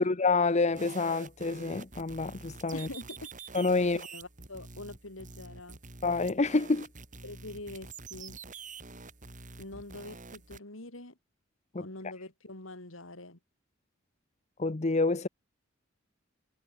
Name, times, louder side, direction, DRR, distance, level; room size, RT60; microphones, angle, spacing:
voice 1, 0.0-2.9 3.5-4.0 6.0-6.9 11.7-11.8 14.6-15.3, left 3 dB, 35° left, 0.8 m, -27 dB
sound 1, 0.7-10.6, right 4 dB, 40° right, 6.1 m, -47 dB
voice 2, 2.7-5.8 7.2-8.4 9.6-11.2 11.8-13.4, left 2 dB, 80° left, 4.3 m, -45 dB
head